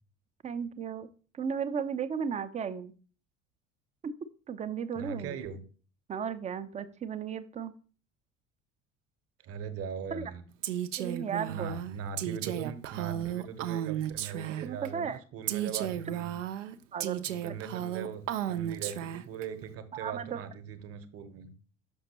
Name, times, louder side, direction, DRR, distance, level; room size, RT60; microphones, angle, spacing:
voice 1, 0.4-1.1 1.4-2.9 4.0-4.1 4.5-5.4 6.1-7.7 10.1-10.3 11.0-11.7 14.6-15.2 16.9-17.3 19.9-20.4, right 7 dB, 20° right, 13 dB, 0.5 m, -35 dB
voice 2, 4.9-5.6 9.4-10.4 11.5-16.3 17.3-21.5, right 7 dB, 40° right, 10 dB, 0.9 m, -40 dB
Female speech woman speaking, 10.6-14.9 15.5-19.4, right 11 dB, 75° right, 0.5 m, -34 dB
6.0 x 5.8 x 2.9 m, 0.39 s
figure-of-eight pair, 60°, 37 cm